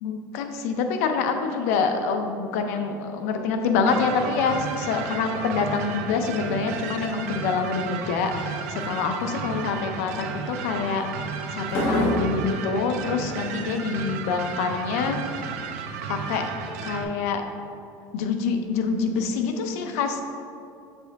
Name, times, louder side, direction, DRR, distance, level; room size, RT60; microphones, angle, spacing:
voice 1, 0.0-11.2 11.5-15.2 16.1-16.4 16.8-17.5 18.1-20.2, left 5 dB, 75° left, 5 dB, 0.6 m, -26 dB
sound 1, 3.9-17.0, right 6 dB, 80° right, 0.5 m, -34 dB
sound 2, 6.2-6.6 6.9-7.4 8.0-8.4 8.8-9.0 11.7-12.5, left 1 dB, 30° left, 1.4 m, -26 dB
6.7 x 4.5 x 3.5 m, 2.6 s
cardioid pair, 175°, 8 cm